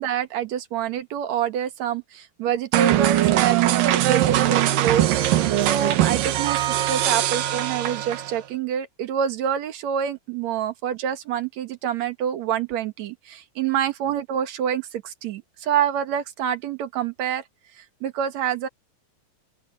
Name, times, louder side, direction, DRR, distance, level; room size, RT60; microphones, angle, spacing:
voice 1, 0.0-17.4 17.8-18.7, right 9 dB, 60° right, 2.5 m, -27 dB
sound 1, 2.7-8.4, right 13 dB, 80° right, 2.9 m, -21 dB
open air
omnidirectional pair, 3.9 m